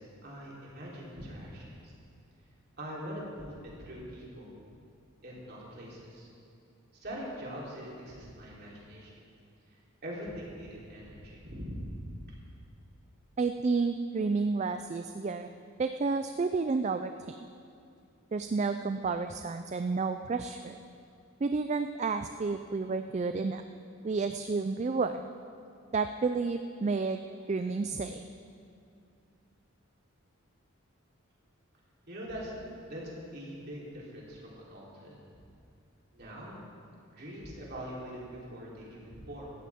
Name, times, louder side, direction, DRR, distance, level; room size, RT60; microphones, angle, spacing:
voice 1, 0.0-1.9 2.8-4.5 5.2-6.3 7.0-9.2 10.0-12.1 32.1-32.6 32.9-35.2 36.1-36.6 37.1-39.5, equal, 45° right, -5 dB, 3.4 m, -42 dB
voice 2, 13.4-15.5 15.8-17.3 18.3-20.8 21.4-23.6 24.0-25.2 25.9-28.2, right 4 dB, 30° right, 8 dB, 0.3 m, -31 dB
17.0 x 14.5 x 3.6 m, 2.4 s
head